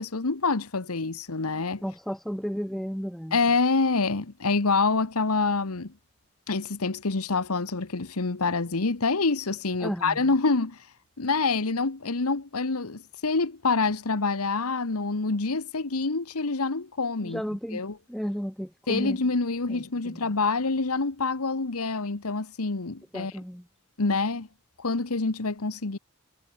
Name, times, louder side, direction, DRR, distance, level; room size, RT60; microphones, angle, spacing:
voice 1, 0.0-1.8 3.3-5.9 6.5-10.8 11.2-17.4 17.7-18.0 18.9-23.3 24.0-24.5 24.8-26.0, left 3 dB, 85° left, 1.3 m, -26 dB
voice 2, 1.8-3.4 9.8-10.2 17.2-17.8 18.1-19.2 19.7-20.2 23.1-23.6, equal, ahead, 1.0 m, -33 dB
head